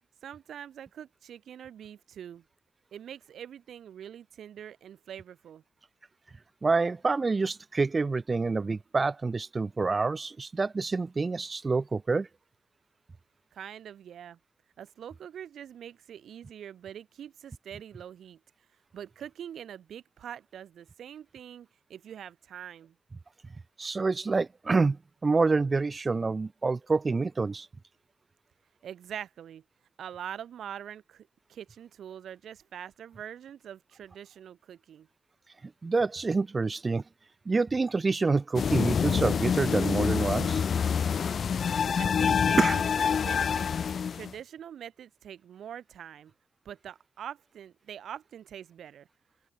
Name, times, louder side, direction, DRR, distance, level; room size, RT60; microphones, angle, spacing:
voice 1, 0.2-2.4 2.9-5.6 13.5-14.4 14.8-18.4 18.9-23.0 28.8-29.6 30.0-35.1 42.0-43.7 44.1-46.3 46.7-49.1, right 9 dB, 75° right, 1.7 m, -44 dB
voice 2, 6.6-12.3 23.8-25.0 25.2-27.7 35.8-37.0 37.5-40.6 42.6-42.8, right 4 dB, 35° right, 1.2 m, -27 dB
sound 1, 38.5-44.3, left 7 dB, 60° left, 1.2 m, -26 dB
open air
cardioid pair, 70°, 0 cm